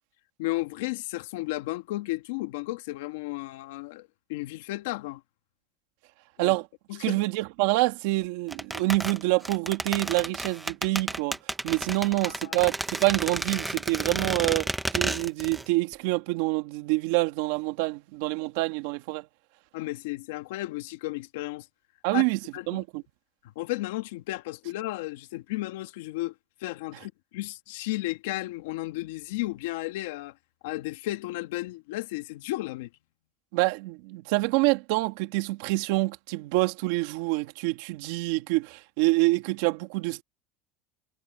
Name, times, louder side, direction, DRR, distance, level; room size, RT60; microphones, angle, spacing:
voice 1, 0.4-5.2 6.4-6.6 6.9-7.2 12.2-12.6 19.7-21.6 22.1-22.3 22.5-22.8 23.5-26.3 26.6-30.3 30.6-32.9, left 18 dB, 85° left, 1.6 m, -33 dB
voice 2, 7.0-11.4 11.6-19.2 22.0-22.4 22.7-23.0 33.5-40.2, right 21 dB, 65° right, 2.0 m, -26 dB
sound 1, 8.5-15.7 15.9-16.0, right 1 dB, 5° right, 0.9 m, -32 dB
cardioid pair, 170°, 0 cm